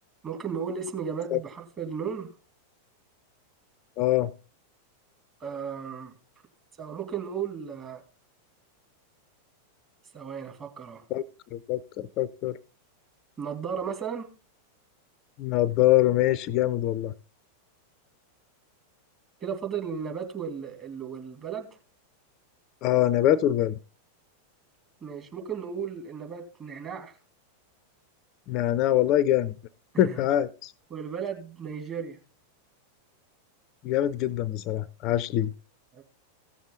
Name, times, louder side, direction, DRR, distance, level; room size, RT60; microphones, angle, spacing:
voice 1, 0.2-2.3 5.4-6.1 6.8-8.0 10.1-11.0 13.4-14.3 19.4-21.8 25.0-27.1 29.9-30.2 30.9-32.2 35.9-36.0, right 7 dB, 25° right, 3 dB, 2.5 m, -35 dB
voice 2, 4.0-4.3 11.1-11.2 11.5-12.6 15.4-17.1 22.8-23.7 28.5-29.5 30.0-30.7 33.8-35.5, left 13 dB, 40° left, 19 dB, 0.5 m, -24 dB
15.5 x 7.2 x 3.8 m, 0.34 s
figure-of-eight pair, 90°, 0 cm